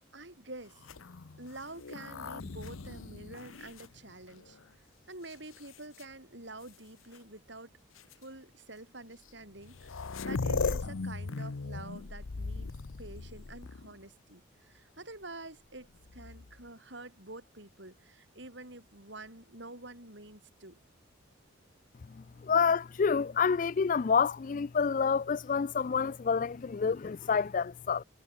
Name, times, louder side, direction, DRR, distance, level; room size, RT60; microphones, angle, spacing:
voice 1, 0.1-0.8 1.4-4.6 5.1-7.8 8.2-12.7 13.0-20.8, right 2 dB, 60° right, 6.7 m, -48 dB
sound 1, 0.8-4.6 5.3-6.0 7.1-7.2 8.0-8.1 9.3-9.4 9.6-14.0 16.0-16.7, left 4 dB, 85° left, 0.8 m, -38 dB
voice 2, 22.1-28.0, left 6 dB, 40° left, 0.4 m, -28 dB
head